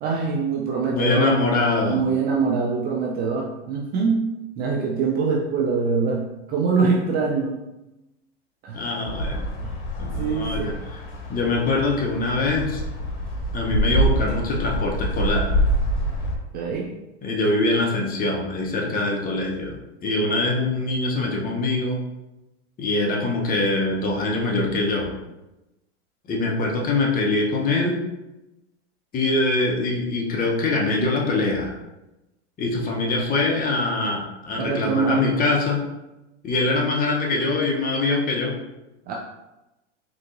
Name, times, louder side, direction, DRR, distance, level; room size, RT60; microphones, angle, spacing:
voice 1, 0.0-1.5 1.8-4.3 4.6-6.2 6.5-7.6 8.6-8.9 9.6-9.7 10.1-10.8 16.5-16.9 34.6-35.3 39.1-39.2, right 5 dB, 30° right, -2 dB, 0.3 m, -23 dB
voice 2, 0.9-2.0 8.7-9.5 10.0-11.0 11.3-12.8 13.5-15.5 17.2-19.8 20.0-22.0 22.8-25.1 26.3-28.0 29.1-31.8 32.6-35.8 36.4-38.5, left 2 dB, 25° left, -1 dB, 0.7 m, -23 dB
sound 1, 9.1-16.4, right 1 dB, 60° left, 0.9 m, -26 dB
3.7 x 2.8 x 2.5 m, 0.97 s
hypercardioid pair, 105°, 36 cm